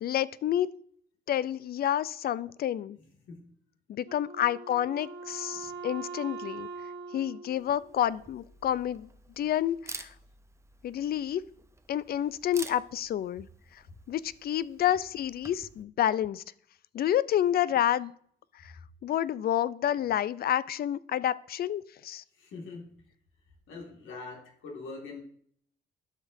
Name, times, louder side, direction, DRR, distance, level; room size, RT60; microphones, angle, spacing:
voice 1, 0.0-0.7 1.3-3.0 3.9-6.7 7.1-9.1 9.4-10.1 10.8-11.4 11.9-13.5 13.7-13.8 14.1-16.4 16.9-18.1 18.6-18.7 19.0-22.2, left 11 dB, 50° left, 19 dB, 0.4 m, -29 dB
Wind instrument woodwind instrument, 4.1-8.5, right 4 dB, 70° right, 1.0 m, -42 dB
Camera, 7.5-15.8, right 3 dB, 15° right, 0.6 m, -49 dB
voice 2, 22.4-22.9 23.7-25.2, left 3 dB, 75° left, 1 dB, 1.9 m, -43 dB
12.0 x 5.2 x 2.6 m, 0.63 s
cardioid pair, 90°, 20 cm